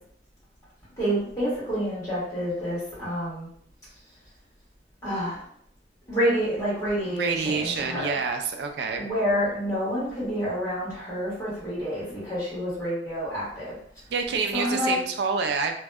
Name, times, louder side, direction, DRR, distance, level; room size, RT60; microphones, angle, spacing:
voice 1, 1.0-3.5 5.0-5.4 6.1-8.2 8.9-13.7 14.5-15.0, equal, 20° left, -10 dB, 1.3 m, -28 dB
voice 2, 7.1-9.1 14.1-15.7, right 5 dB, 70° right, 4 dB, 0.3 m, -27 dB
2.6 x 2.1 x 2.2 m, 0.64 s
head